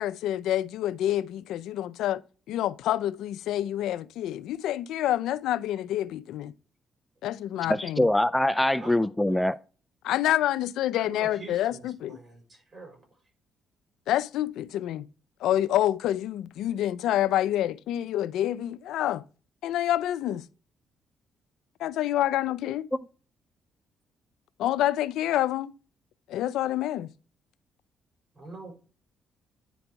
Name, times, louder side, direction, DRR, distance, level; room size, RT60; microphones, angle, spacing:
voice 1, 0.0-2.2 2.5-6.5 7.2-8.1 10.0-12.2 14.1-15.1 15.4-19.2 19.6-20.4 21.8-22.9 24.6-25.7 26.3-27.1, left 12 dB, 85° left, 0.5 m, -27 dB
voice 2, 7.7-9.6, left 1 dB, 5° left, 0.4 m, -23 dB
voice 3, 8.7-9.4 11.0-13.0 28.3-28.7, right 3 dB, 40° right, 4.3 m, -45 dB
9.8 x 4.0 x 4.6 m
cardioid pair, 90°, 0 cm